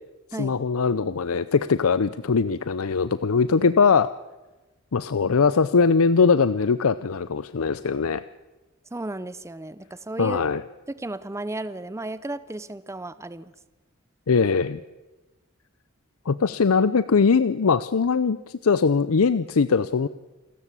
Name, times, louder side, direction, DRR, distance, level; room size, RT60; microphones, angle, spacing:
voice 1, 0.4-4.1 4.9-8.2 10.2-10.6 14.3-14.8 16.3-20.1, left 5 dB, 75° left, 15 dB, 0.6 m, -21 dB
voice 2, 8.9-10.4 10.9-13.5, right 2 dB, 15° right, 15 dB, 0.6 m, -34 dB
28.0 x 13.5 x 8.3 m, 1.1 s
head